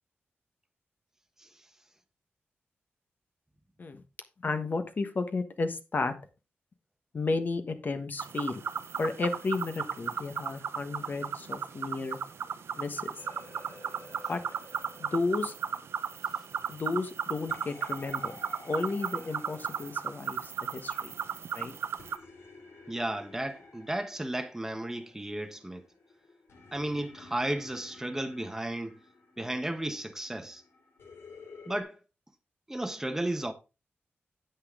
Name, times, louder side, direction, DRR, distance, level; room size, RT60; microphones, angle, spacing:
voice 1, 4.4-6.1 7.1-8.6 9.0-12.2 12.8-13.1 14.3-14.4 15.0-15.5 16.7-18.3 18.6-21.1 21.5-21.7, left 3 dB, 45° left, 1.3 m, -33 dB
sound 1, 8.2-22.2, right 7 dB, 75° right, 0.7 m, -36 dB
sound 2, 13.2-31.8, left 3 dB, 75° left, 4.3 m, -53 dB
voice 2, 22.9-25.8 26.7-29.0 29.4-30.6 31.7-32.0 32.7-33.5, right 1 dB, 10° right, 1.1 m, -34 dB
9.7 x 8.2 x 3.7 m
wide cardioid pair, 110°, 4 cm